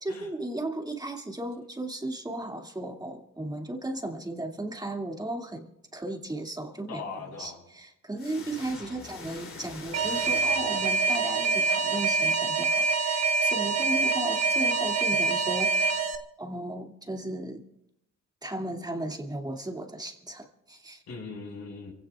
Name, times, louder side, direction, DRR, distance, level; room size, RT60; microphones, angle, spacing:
voice 1, 0.0-16.0 16.4-17.6 18.4-21.0, right 1 dB, 15° right, 2 dB, 2.3 m, -35 dB
voice 2, 6.9-7.6 8.4-8.5 21.1-21.9, left 4 dB, 70° left, 0 dB, 5.4 m, -40 dB
sound 1, 8.2-11.5, left 4 dB, 45° left, 3.1 m, -45 dB
Alarm, 9.9-16.2, right 4 dB, 60° right, 1.3 m, -25 dB
29.0 x 17.0 x 2.4 m, 0.83 s
cardioid pair, 90°, 30 cm